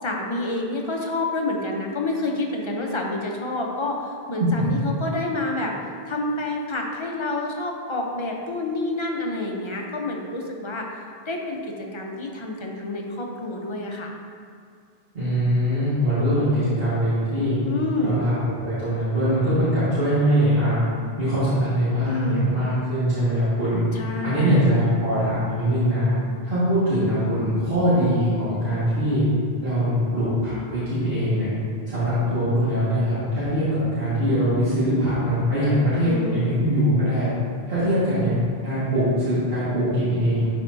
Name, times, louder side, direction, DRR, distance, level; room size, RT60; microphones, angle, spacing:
voice 1, 0.0-5.7 6.1-10.9 11.3-11.6 11.9-14.1 17.6-18.2 22.1-22.5 23.9-24.8 36.0-36.4, left 2 dB, 30° left, 0 dB, 0.7 m, -28 dB
voice 2, 15.1-17.6 18.0-20.8 21.2-23.8 24.2-26.1 26.4-29.2 29.6-31.5 31.9-37.3 37.7-38.3 38.6-40.5, equal, 70° right, -13 dB, 2.1 m, -22 dB
11.0 x 4.6 x 2.7 m, 2.2 s
omnidirectional pair, 1.0 m